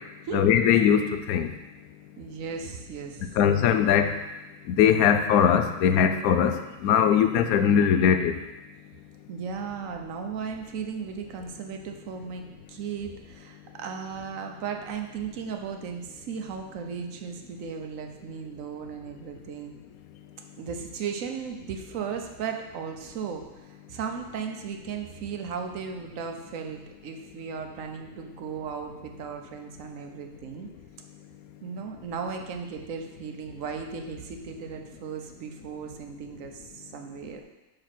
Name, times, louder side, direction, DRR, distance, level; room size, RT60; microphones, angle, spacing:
voice 1, 0.3-1.5 3.4-4.1 4.7-6.6 6.8-8.3, left 8 dB, 90° left, 8 dB, 1.1 m, -20 dB
voice 2, 2.2-3.4 9.3-19.8 20.6-30.7 31.6-37.4, right 6 dB, 70° right, 4 dB, 1.1 m, -36 dB
5.3 x 4.9 x 5.9 m, 1.1 s
omnidirectional pair, 1.5 m